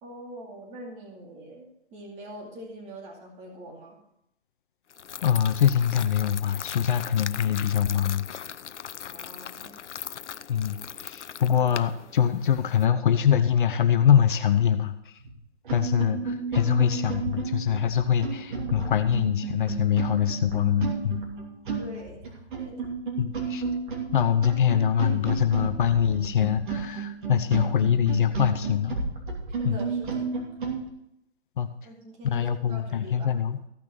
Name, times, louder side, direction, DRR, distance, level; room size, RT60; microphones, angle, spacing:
voice 1, 0.0-4.0 9.0-9.8 21.8-22.8 29.6-30.4 31.8-33.4, right 1 dB, 20° right, -1 dB, 2.5 m, -44 dB
sound 1, 4.9-12.9, left 8 dB, 80° left, 0.6 m, -39 dB
voice 2, 5.2-8.2 10.5-15.1 15.7-21.2 23.2-23.6 24.1-29.0 29.6-29.8 31.6-31.7 32.2-33.6, left 8 dB, 45° left, 8 dB, 0.8 m, -24 dB
sound 2, 15.2-15.3 15.7-30.8, right 5 dB, 45° right, 2.9 m, -32 dB
15.0 x 6.0 x 5.9 m, 0.78 s
hypercardioid pair, 140°, 35 cm